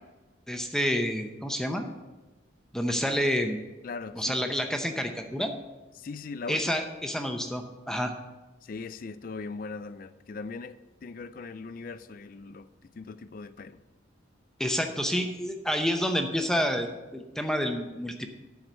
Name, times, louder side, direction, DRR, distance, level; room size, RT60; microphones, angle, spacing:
voice 1, 0.5-1.9 2.7-3.6 4.1-5.5 6.5-8.1 14.6-18.3, equal, 5° left, 5 dB, 0.7 m, -29 dB
voice 2, 3.8-4.4 6.0-6.6 8.6-12.7 13.0-13.8, left 4 dB, 45° left, 13 dB, 0.4 m, -39 dB
11.5 x 4.7 x 6.8 m, 1.1 s
head